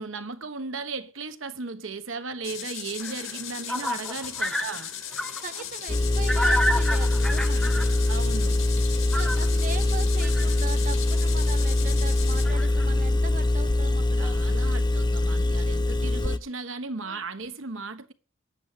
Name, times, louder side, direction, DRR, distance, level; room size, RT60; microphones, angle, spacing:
voice 1, 0.0-4.9 8.1-8.6 14.2-18.1, right 3 dB, 80° right, 1.3 m, -36 dB
sound 1, 2.4-12.4, left 9 dB, 85° left, 2.6 m, -37 dB
sound 2, 3.0-5.6 6.3-8.1 8.9-9.7 10.2-10.6 11.4-11.5 11.7-11.8 12.4-12.9 13.8-13.9 14.2-14.4, equal, 5° left, 0.9 m, -30 dB
voice 2, 5.4-7.9 9.1-14.3 15.4-15.6 17.0-17.2, right 4 dB, 40° right, 0.8 m, -39 dB
Engine, 5.9-16.4, left 2 dB, 20° left, 0.6 m, -23 dB
9.7 x 8.7 x 7.4 m
head